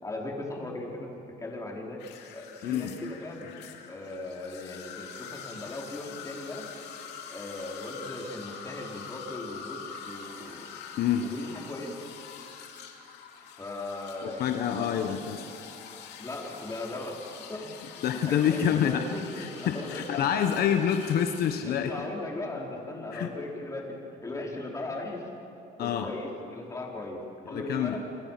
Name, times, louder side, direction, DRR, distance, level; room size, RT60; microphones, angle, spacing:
voice 1, 0.0-1.1 1.4-2.0 2.3-3.5 3.9-6.7 7.3-10.7 11.2-11.9 13.6-15.1 16.2-17.2 17.5-20.3 21.6-25.2 25.8-28.0, left 2 dB, 20° left, -1 dB, 5.1 m, -38 dB
sound 1, 2.0-21.6, left 7 dB, 90° left, 2.7 m, -45 dB
voice 2, 2.6-3.0 11.0-11.2 14.2-15.4 18.0-19.0 19.4-21.9 23.1-23.3 25.8-26.1 27.5-28.0, left 9 dB, 65° left, 6 dB, 1.3 m, -27 dB
28.5 x 25.0 x 6.0 m, 2.9 s
cardioid pair, 110°, 17 cm